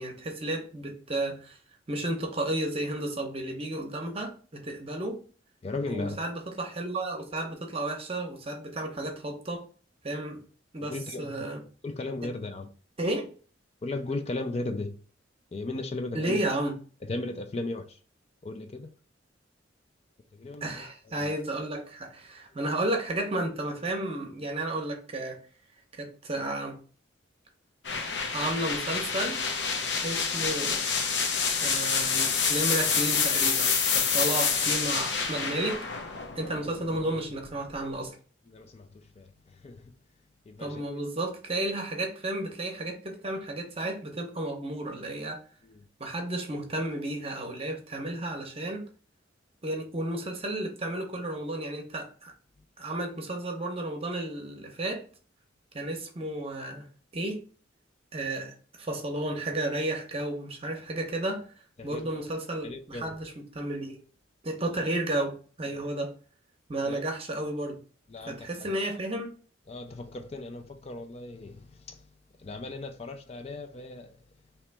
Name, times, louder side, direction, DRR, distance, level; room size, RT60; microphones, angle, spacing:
voice 1, 0.0-1.6 1.9-5.2 5.9-9.6 10.0-10.4 10.7-11.6 13.0-13.3 16.1-16.8 20.6-25.4 25.9-26.8 28.3-29.4 30.0-30.8 31.6-35.8 36.3-38.2 40.6-45.4 46.0-48.9 49.6-52.3 52.8-55.0 55.7-56.9 57.1-57.4 58.1-61.4 61.8-64.0 64.4-66.1 66.7-67.8 68.2-69.3, right 1 dB, 30° right, 0.8 m, -32 dB
voice 2, 5.6-6.2 10.9-11.5 11.8-12.7 13.8-15.0 15.5-16.4 17.1-18.0 18.4-18.9 20.3-20.8 21.2-21.3 38.5-38.9 39.2-39.3 39.6-39.8 40.5-40.8 61.8-62.3 62.6-63.2 66.8-67.0 68.1-68.7 69.7-72.0 72.4-74.1, left 2 dB, 35° left, 0.4 m, -36 dB
sound 1, 27.8-37.6, left 5 dB, 65° left, 0.7 m, -28 dB
3.1 x 2.9 x 4.5 m
head